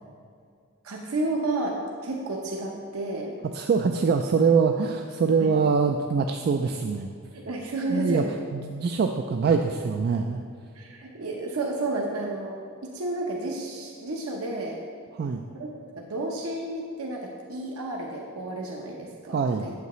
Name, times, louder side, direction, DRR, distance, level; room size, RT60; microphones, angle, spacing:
voice 1, 0.8-3.4 5.4-5.5 7.3-8.4 10.7-12.6 12.8-14.8 15.5-19.7, right 2 dB, 80° right, -1 dB, 0.8 m, -31 dB
voice 2, 3.5-7.1 7.9-8.2 8.5-10.4 15.1-15.4 19.3-19.7, right 5 dB, 50° right, 4 dB, 0.3 m, -24 dB
8.2 x 8.1 x 3.1 m, 2.3 s
head